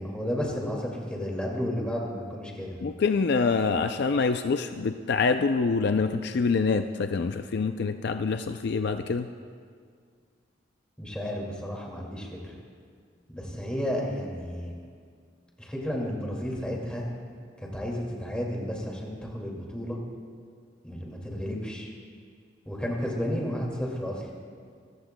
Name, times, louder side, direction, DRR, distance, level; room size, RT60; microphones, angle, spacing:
voice 1, 0.0-2.8 11.0-12.6 13.3-14.7 15.6-17.0 17.6-20.0 20.8-21.9 22.7-24.3, equal, 5° left, -2 dB, 2.2 m, -32 dB
voice 2, 2.8-9.3, left 4 dB, 55° left, 8 dB, 0.4 m, -26 dB
25.5 x 15.0 x 2.2 m, 2.1 s
head